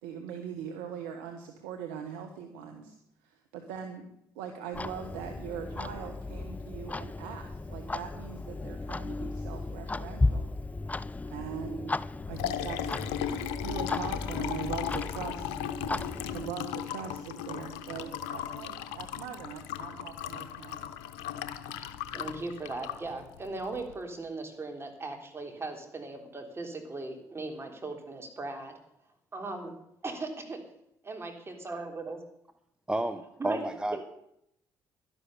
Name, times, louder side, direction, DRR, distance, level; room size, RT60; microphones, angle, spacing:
voice 1, 0.0-2.9 3.2-10.5 11.3-12.0 12.3-12.9 13.6-15.6 16.3-20.8, right 8 dB, 80° right, 4 dB, 1.2 m, -41 dB
Clock, 4.7-16.5, left 2 dB, 15° left, 0.4 m, -35 dB
Liquid, 12.1-23.9, left 9 dB, 75° left, 0.8 m, -37 dB
voice 2, 22.1-28.7 29.3-29.7 30.0-30.3 31.1-32.2 33.4-33.6 33.9-34.0, right 3 dB, 30° right, 4 dB, 3.4 m, -38 dB
voice 3, 32.9-34.0, right 1 dB, 10° right, 9 dB, 1.0 m, -31 dB
11.5 x 11.0 x 6.6 m, 0.77 s
hypercardioid pair, 50°, 9 cm